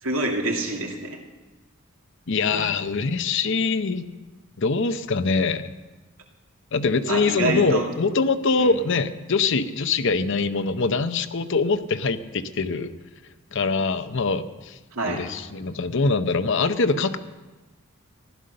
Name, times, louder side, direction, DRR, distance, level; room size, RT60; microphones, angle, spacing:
voice 1, 0.0-1.2 2.5-2.7 7.1-7.9 8.6-8.8 14.9-15.2, right 2 dB, 70° right, 0 dB, 2.5 m, -27 dB
voice 2, 2.3-4.1 4.6-5.7 6.7-12.9 13.5-14.8 15.1-17.2, left 4 dB, 60° left, 11 dB, 0.7 m, -23 dB
15.5 x 12.0 x 6.6 m, 1.2 s
head